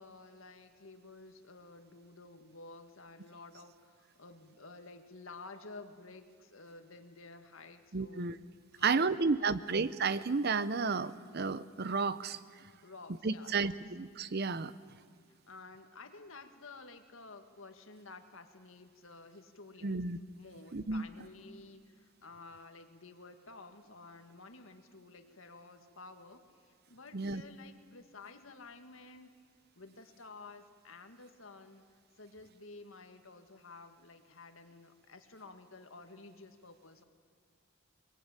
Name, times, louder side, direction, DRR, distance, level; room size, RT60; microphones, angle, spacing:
voice 1, 0.0-8.4 8.7-9.6 12.8-13.8 15.4-20.0 20.4-29.3 29.8-31.8 32.2-37.0, left 3 dB, 70° left, 7 dB, 1.9 m, -52 dB
voice 2, 7.9-8.4 8.8-12.4 13.2-14.7 19.8-20.2 20.7-21.0 27.1-27.4, right 4 dB, 50° right, 15 dB, 0.7 m, -32 dB
22.5 x 21.5 x 9.0 m, 2.1 s
head